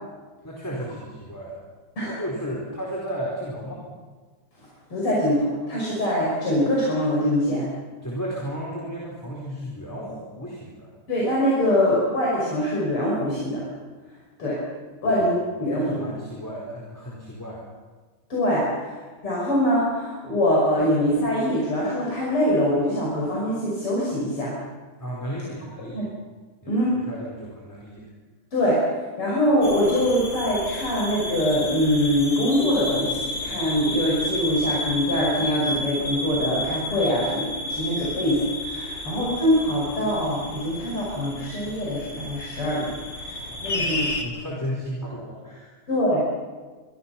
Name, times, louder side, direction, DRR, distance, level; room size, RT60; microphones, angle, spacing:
voice 1, 0.4-1.7 2.0-3.8 8.0-10.9 15.0-15.2 15.7-17.6 25.0-26.0 26.6-28.1 39.1-39.2 43.2-45.8, equal, 10° left, -3 dB, 4.3 m, -34 dB
voice 2, 4.9-7.7 11.1-13.6 14.4-14.6 15.0-16.0 18.3-18.7 19.2-24.6 25.9-26.1 26.7-27.0 28.5-28.8 29.2-44.1 45.9-46.2, equal, 85° left, -5 dB, 6.6 m, -23 dB
sound 1, 29.6-44.2, left 2 dB, 55° left, 2.9 m, -31 dB
25.5 x 24.5 x 6.0 m, 1.4 s
omnidirectional pair, 2.4 m